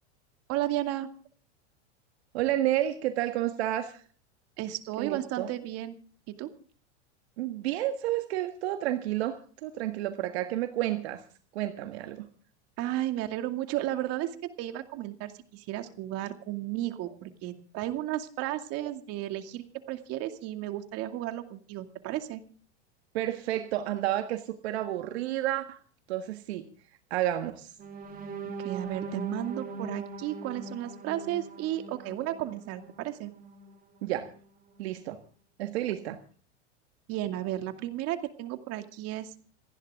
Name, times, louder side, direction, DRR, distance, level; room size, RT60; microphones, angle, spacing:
voice 1, 0.5-1.1 4.6-6.0 6.3-6.5 12.8-22.4 28.4-33.3 37.1-39.3, right 14 dB, 45° right, 8 dB, 2.4 m, -34 dB
voice 2, 2.3-4.0 5.0-5.5 7.4-11.2 11.5-12.3 23.1-25.8 26.1-26.7 27.1-27.7 34.0-34.3 34.8-35.2 35.6-36.2, right 13 dB, 70° right, 8 dB, 1.7 m, -30 dB
sound 1, 27.8-33.7 34.2-34.4 34.7-35.0, right 3 dB, 25° right, 3.0 m, -41 dB
28.0 x 11.0 x 3.7 m, 0.43 s
hypercardioid pair, 120°, 34 cm